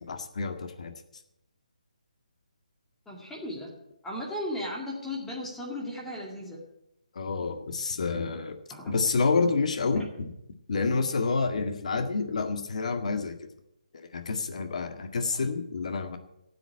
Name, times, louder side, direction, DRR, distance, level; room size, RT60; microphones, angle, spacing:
voice 1, 0.0-0.9 7.2-8.6 8.9-10.3 10.7-13.4 13.9-16.2, left 4 dB, 60° left, 7 dB, 1.8 m, -28 dB
voice 2, 3.1-3.7 4.0-6.6 8.7-8.9 10.0-10.1, left 1 dB, 5° left, -3 dB, 2.2 m, -36 dB
14.0 x 7.8 x 8.6 m, 0.84 s
hypercardioid pair, 160°, 4 cm